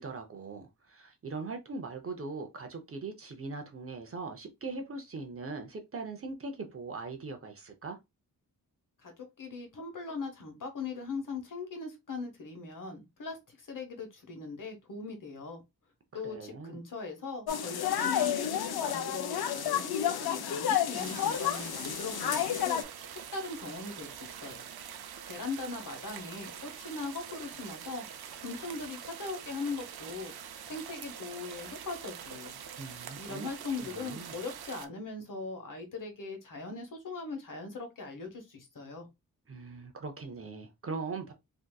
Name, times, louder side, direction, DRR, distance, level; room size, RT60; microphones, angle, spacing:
voice 1, 0.0-8.0 16.2-16.8 32.8-33.5 33.8-34.4 39.5-41.3, right 3 dB, 40° right, 0.5 m, -40 dB
voice 2, 9.0-15.6 16.1-22.8 23.3-24.6 25.3-28.0 28.4-30.3 30.7-32.5 33.2-39.1, left 4 dB, 60° left, 1.0 m, -40 dB
sound 1, 17.5-22.8, left 9 dB, 90° left, 0.6 m, -30 dB
sound 2, 20.9-34.9, right 8 dB, 85° right, 0.5 m, -45 dB
3.4 x 2.7 x 2.2 m
wide cardioid pair, 165°, 37 cm